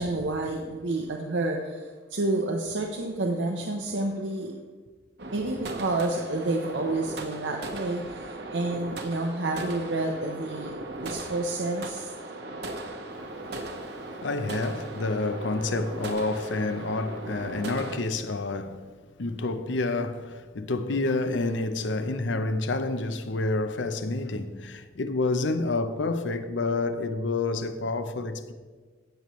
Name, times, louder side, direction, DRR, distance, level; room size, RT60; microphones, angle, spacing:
voice 1, 0.0-4.5 5.3-12.1, right 2 dB, 80° right, 0.8 m, -29 dB
sound 1, 5.2-18.0, right 2 dB, 60° right, 1.1 m, -38 dB
voice 2, 13.4-18.9 19.2-28.5, left 3 dB, 85° left, 0.7 m, -29 dB
16.0 x 6.9 x 3.1 m
head